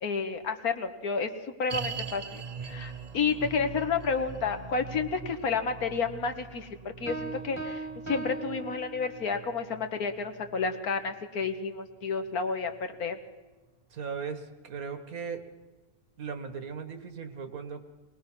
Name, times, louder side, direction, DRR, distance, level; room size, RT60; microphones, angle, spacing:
voice 1, 0.0-13.2, left 5 dB, 80° left, 6 dB, 1.9 m, -31 dB
sound 1, 1.7-13.0 13.2-13.3 14.0-14.1, right 6 dB, 45° right, 0.5 m, -43 dB
sound 2, 7.1-9.5, right 2 dB, 10° right, 1.5 m, -38 dB
voice 2, 13.9-15.4 16.2-17.8, right 6 dB, 70° right, 8 dB, 1.9 m, -37 dB
22.0 x 19.5 x 6.1 m, 1.2 s
omnidirectional pair, 1.5 m